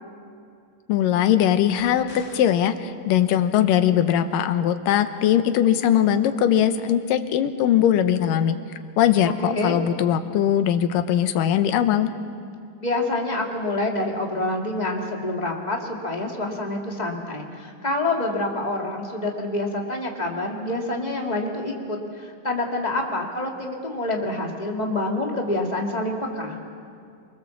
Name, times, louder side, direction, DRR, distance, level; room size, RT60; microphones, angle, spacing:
voice 1, 0.9-8.6 9.0-12.1, left 10 dB, 90° left, 9 dB, 2.6 m, -20 dB
sound 1, 2.1-2.8, left 3 dB, 70° left, 4.5 m, -46 dB
voice 2, 9.3-9.8 12.8-26.6, left 2 dB, 15° left, 0 dB, 1.9 m, -27 dB
27.5 x 20.5 x 7.2 m, 2.4 s
omnidirectional pair, 3.8 m